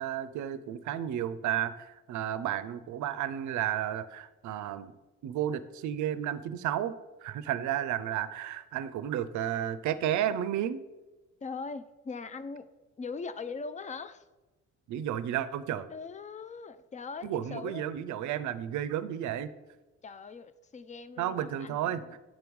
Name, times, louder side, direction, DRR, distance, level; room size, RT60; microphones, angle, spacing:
voice 1, 0.0-4.9 5.2-6.9 7.2-10.8 14.9-15.9 17.2-19.5 21.2-22.2, right 11 dB, 75° right, 14 dB, 0.5 m, -32 dB
voice 2, 11.4-12.7 13.0-14.2 15.9-17.9 20.0-22.1, left 4 dB, 25° left, 13 dB, 0.4 m, -41 dB
7.4 x 3.6 x 4.6 m, 1.1 s
cardioid pair, 90°, 30 cm